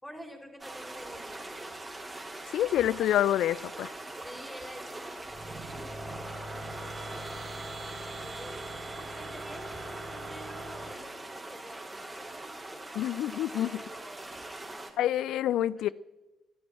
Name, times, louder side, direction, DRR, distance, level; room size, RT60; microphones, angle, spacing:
voice 1, 0.0-1.7 4.2-6.6 8.0-12.3 13.5-15.9, equal, 10° left, 3 dB, 4.7 m, -49 dB
sound 1, 0.6-14.9, right 2 dB, 20° right, 3.9 m, -43 dB
voice 2, 2.5-3.9 12.9-13.7 15.0-15.9, left 12 dB, 70° left, 22 dB, 0.4 m, -27 dB
sound 2, 5.2-10.9, right 2 dB, 40° right, 3.3 m, -41 dB
14.5 x 11.5 x 7.5 m, 1.1 s
hypercardioid pair, 45°, 0 cm